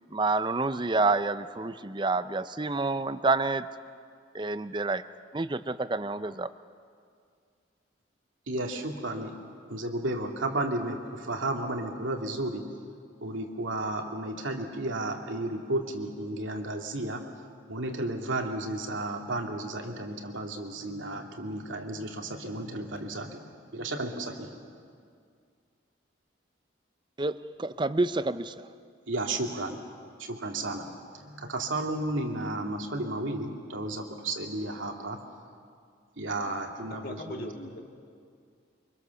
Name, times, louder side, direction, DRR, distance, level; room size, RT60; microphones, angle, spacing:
voice 1, 0.1-3.7 4.3-5.0 5.3-6.5 27.2-28.5, right 3 dB, 25° right, 13 dB, 0.5 m, -28 dB
voice 2, 8.5-9.4 9.7-12.6 13.2-17.2 17.7-24.6 29.1-29.8 30.2-30.9 31.1-35.2 36.2-37.5, right 2 dB, 85° right, 2 dB, 2.5 m, -33 dB
voice 3, 36.9-37.8, left 1 dB, 50° left, 2 dB, 1.9 m, -39 dB
24.5 x 23.5 x 7.0 m, 2.2 s
head